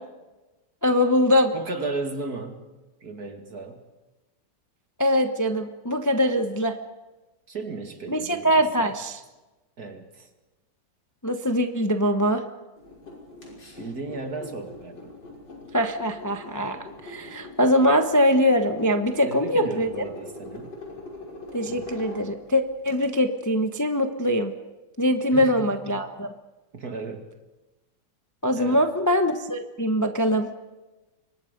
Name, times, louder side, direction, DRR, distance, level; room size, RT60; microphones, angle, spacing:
voice 1, 0.8-1.5 5.0-6.8 8.1-9.2 11.2-12.4 15.7-19.9 21.5-24.5 25.0-26.3 28.4-30.5, equal, 15° left, 6 dB, 0.9 m, -22 dB
voice 2, 1.5-2.6 3.0-3.8 7.5-8.9 9.8-10.3 13.8-15.1 19.3-20.8 21.7-21.9 25.3-25.9 26.7-27.3 28.6-28.8, right 3 dB, 55° right, 5 dB, 2.7 m, -35 dB
sound 1, 12.8-23.1, left 2 dB, 70° left, 6.7 m, -42 dB
28.5 x 24.0 x 5.3 m, 1.1 s
omnidirectional pair, 2.0 m